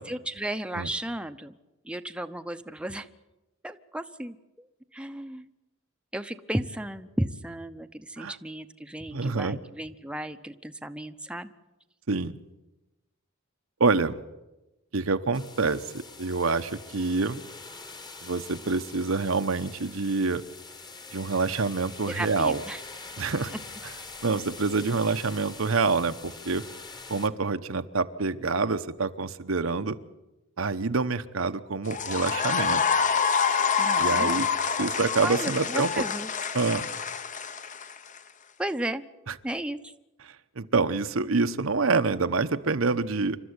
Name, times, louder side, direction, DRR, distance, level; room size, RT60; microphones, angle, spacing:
voice 1, 0.1-1.5 1.8-3.1 3.6-4.7 4.9-5.5 6.1-11.5 22.1-22.8 23.5-23.6 33.8-34.5 35.2-36.3 38.6-39.0 39.4-39.9, right 1 dB, 5° right, 8 dB, 0.8 m, -34 dB
voice 2, 9.1-9.6 12.1-12.4 13.8-14.2 14.9-17.4 18.2-20.4 21.1-22.6 23.2-23.5 24.2-26.6 27.1-30.0 30.6-32.8 34.0-34.5 34.8-36.0 36.5-36.9 39.3-39.4 40.6-43.4, right 4 dB, 80° right, 10 dB, 1.0 m, -26 dB
sound 1, 15.3-27.3, left 3 dB, 20° left, 1.4 m, -44 dB
sound 2, 31.8-38.2, left 6 dB, 40° left, 0.9 m, -27 dB
27.5 x 13.0 x 9.7 m, 1.0 s
head